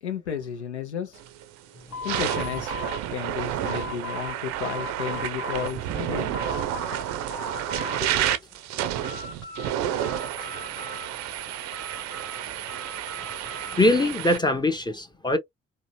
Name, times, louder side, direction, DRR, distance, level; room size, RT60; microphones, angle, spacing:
voice 1, 0.0-1.2 2.0-2.7 3.1-6.4, left 8 dB, 85° left, 0.5 m, -33 dB
sound 1, 1.2-1.4 1.9-14.4, right 11 dB, 55° right, 0.5 m, -30 dB
sound 2, 1.9-4.4 4.6-5.7 6.1-7.0 7.3-8.4 8.7-9.7 10.0-11.3 11.7-13.8, left 4 dB, 60° left, 1.1 m, -39 dB
voice 2, 13.8-15.4, left 2 dB, 15° left, 0.6 m, -23 dB
2.7 x 2.7 x 2.8 m
figure-of-eight pair, 45°, 33 cm